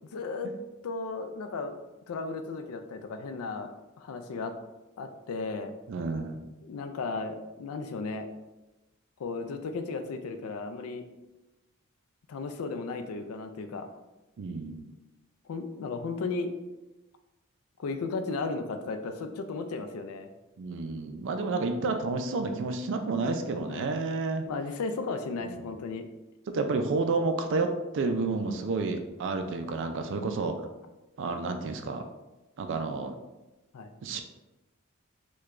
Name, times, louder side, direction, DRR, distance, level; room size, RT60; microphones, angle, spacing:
voice 1, 0.1-0.5 0.8-1.7 2.1-3.7 4.0-4.5 5.0-5.7 6.6-8.3 9.2-11.1 12.3-13.9 15.5-16.5 17.8-20.3 23.7-23.9 24.5-26.1 33.7-33.9, left 4 dB, 80° left, 8 dB, 0.4 m, -35 dB
voice 2, 5.9-6.4 14.4-14.9 20.6-24.4 25.4-25.8 26.5-30.7 31.2-32.1 32.6-33.2 34.0-34.2, right 3 dB, 60° right, 6 dB, 0.4 m, -30 dB
4.6 x 2.3 x 2.5 m, 1.0 s
head